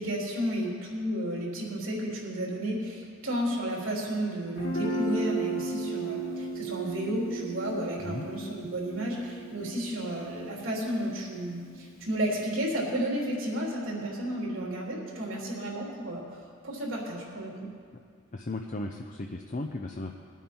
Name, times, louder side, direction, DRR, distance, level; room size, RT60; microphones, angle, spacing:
voice 1, 0.0-16.2 16.6-17.7, right 1 dB, 80° right, -3 dB, 3.4 m, -32 dB
Guitar, 4.6-12.3, right 2 dB, 85° left, 3.2 m, -35 dB
voice 2, 18.3-20.1, left 2 dB, 40° left, 3 dB, 0.6 m, -35 dB
20.5 x 9.0 x 4.5 m, 2.1 s
head